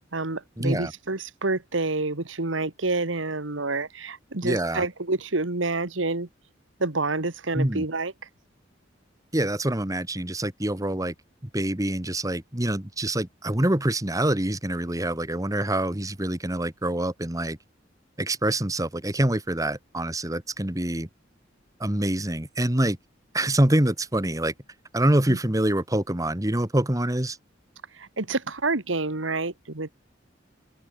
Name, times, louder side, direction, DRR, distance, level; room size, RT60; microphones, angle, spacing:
voice 1, 0.0-6.3 6.8-8.1 25.3-25.4 27.9-29.9, right 3 dB, 85° right, 1.9 m, -28 dB
voice 2, 0.6-0.9 4.4-4.8 7.5-7.9 9.3-11.1 11.5-17.6 18.2-21.1 21.8-23.0 23.3-24.5 24.9-27.4, right 1 dB, 20° right, 1.6 m, -25 dB
open air
head